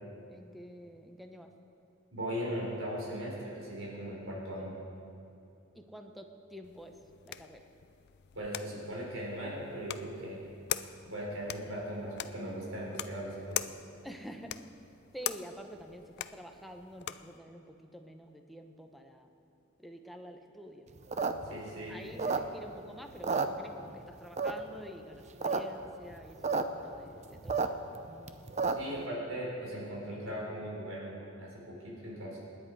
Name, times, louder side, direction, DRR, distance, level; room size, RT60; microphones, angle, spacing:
voice 1, 0.3-1.5 5.7-6.9 7.2-7.7 14.0-14.6 15.1-19.3 19.8-20.9 21.5-27.7 28.9-29.1, equal, ahead, 4 dB, 1.0 m, -48 dB
voice 2, 2.1-4.7 8.3-10.4 11.1-13.7 21.5-22.0 28.7-32.4, equal, 75° right, -4 dB, 4.4 m, -38 dB
sound 1, 6.6-17.4, left 11 dB, 55° left, 0.5 m, -43 dB
sound 2, 21.0-22.8 23.1-24.0 24.4-24.8 25.2-25.6 25.9-26.0 26.1-26.6 27.0-29.0, right 4 dB, 35° right, 0.7 m, -31 dB
27.5 x 10.5 x 4.9 m, 2.6 s
head